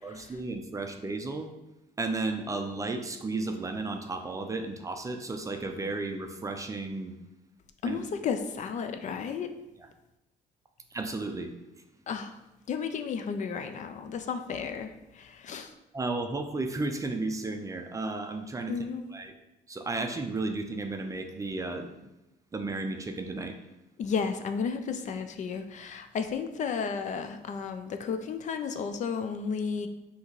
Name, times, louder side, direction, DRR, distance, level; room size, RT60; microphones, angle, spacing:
voice 1, 0.0-1.5 2.0-7.1 7.8-8.0 10.9-11.5 15.9-18.8 19.1-19.3 19.7-22.1 22.5-23.6, right 3 dB, 20° right, 6 dB, 0.4 m, -33 dB
voice 2, 7.8-9.5 12.1-12.4 12.7-15.7 18.7-19.1 24.0-29.9, left 6 dB, 45° left, 7 dB, 0.4 m, -33 dB
5.6 x 2.8 x 3.1 m, 0.93 s
cardioid pair, 110°, 17 cm